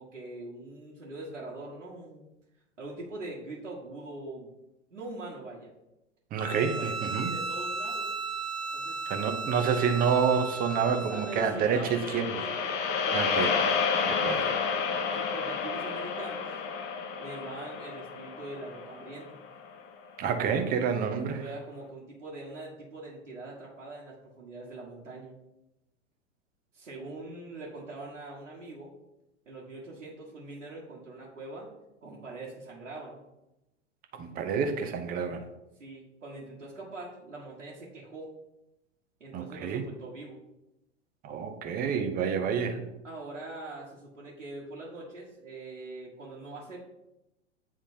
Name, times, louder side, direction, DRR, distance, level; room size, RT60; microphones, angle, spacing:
voice 1, 0.0-2.3 2.8-4.5 4.9-5.7 6.6-8.1 8.7-9.0 10.8-13.6 14.9-16.5 17.2-19.4 21.3-25.3 26.7-28.9 29.4-31.7 32.0-33.2 35.8-38.3 39.2-40.4 43.0-46.8, right 2 dB, 80° right, -7 dB, 1.5 m, -42 dB
voice 2, 6.3-7.4 9.1-12.3 13.1-13.5 14.0-14.5 20.2-21.4 34.1-35.4 39.3-39.8 41.2-42.9, right 6 dB, 25° right, 7 dB, 0.7 m, -28 dB
Bowed string instrument, 6.4-11.6, right 3 dB, 10° right, 1.5 m, -35 dB
sound 1, 11.5-19.8, left 5 dB, 30° left, 0.6 m, -30 dB
9.5 x 3.6 x 2.7 m, 0.94 s
figure-of-eight pair, 95°, 37 cm